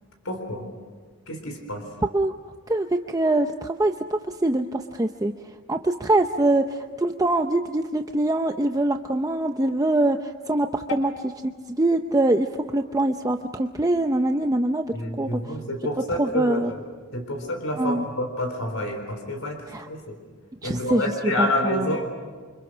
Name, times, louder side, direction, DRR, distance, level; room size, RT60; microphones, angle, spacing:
voice 1, 0.2-0.7 1.3-1.8 14.9-16.6 17.1-20.2 20.6-22.1, left 1 dB, 80° left, 5 dB, 4.0 m, -28 dB
voice 2, 2.7-5.3 5.7-11.1 11.4-12.5 12.7-14.8 15.2-15.4 16.2-16.7 17.8-18.0 19.7-19.9 20.6-22.0, right 2 dB, 15° right, 5 dB, 0.7 m, -23 dB
29.5 x 25.5 x 6.3 m, 1.5 s
head